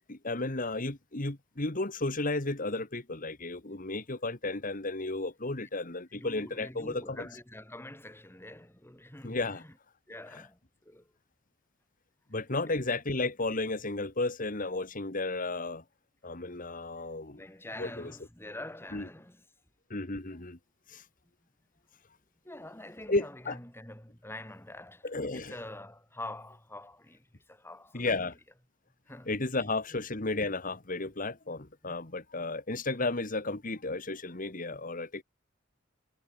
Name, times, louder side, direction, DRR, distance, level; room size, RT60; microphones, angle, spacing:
voice 1, 0.1-7.3 9.2-9.6 10.3-10.4 12.3-15.8 16.2-17.4 17.8-18.1 18.9-19.1 19.9-20.6 20.9-21.1 23.1-23.6 25.0-25.5 27.9-28.4 29.3-35.2, left 2 dB, 45° left, 2.1 m, -33 dB
voice 2, 6.1-9.7 10.1-11.1 12.3-12.4 12.7-12.8 17.3-19.4 22.4-25.1 25.3-28.1 29.1-29.3 29.9-30.0 31.8-31.9, left 1 dB, 15° left, 4.4 m, -46 dB
head